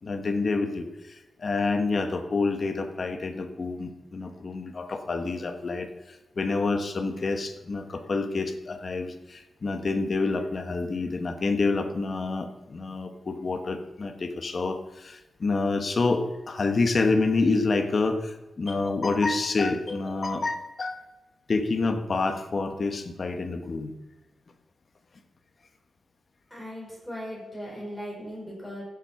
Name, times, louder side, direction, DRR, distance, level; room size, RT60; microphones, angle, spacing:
voice 1, 0.0-21.0 21.5-24.0, left 3 dB, 40° left, 6 dB, 1.3 m, -28 dB
voice 2, 26.5-28.8, equal, ahead, -5 dB, 5.5 m, -38 dB
15.0 x 7.7 x 5.8 m, 1.0 s
wide cardioid pair, 150°, 0 cm